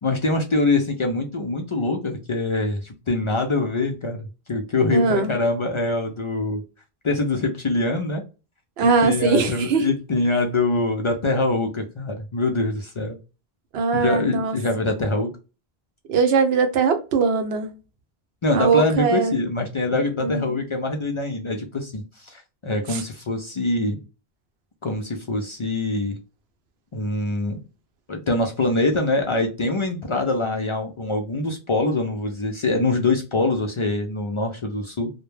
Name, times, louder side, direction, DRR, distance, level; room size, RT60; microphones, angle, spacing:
voice 1, 0.0-6.6 7.0-8.2 8.8-13.2 13.9-15.3 18.4-24.0 24.8-26.2 26.9-27.6 28.1-35.1, left 2 dB, 55° left, 0.3 m, -24 dB
voice 2, 4.9-5.3 8.8-9.9 13.7-14.6 16.1-17.7 18.5-19.4 20.2-20.6 22.9-23.0, right 5 dB, 85° right, 0.9 m, -21 dB
2.1 x 2.1 x 3.0 m
omnidirectional pair, 1.0 m